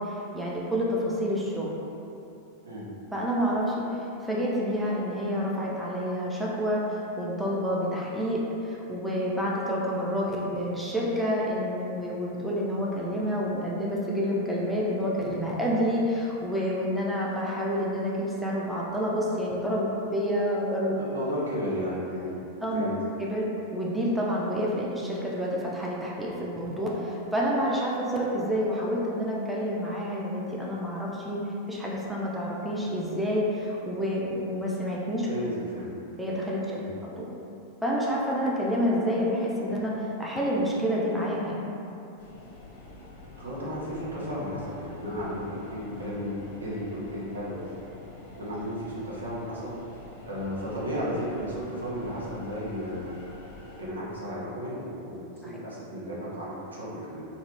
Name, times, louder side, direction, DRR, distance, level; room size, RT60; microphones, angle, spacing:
voice 1, 0.0-1.7 3.1-20.9 22.6-22.9 23.2-31.4 31.7-35.3 36.2-36.6 37.0-37.3 37.8-41.8 55.4-55.5, equal, 5° right, -5 dB, 0.4 m, -28 dB
voice 2, 20.9-22.3 22.7-22.9 35.3-35.9 36.7-36.9 43.1-46.3 46.6-47.6 48.4-49.9 50.3-53.2 53.8-57.3, equal, 75° right, -7 dB, 0.6 m, -34 dB
sound 1, 42.2-53.8, left 2 dB, 55° left, 0.4 m, -46 dB
2.4 x 2.1 x 3.1 m, 2.8 s
figure-of-eight pair, 90°, 0 cm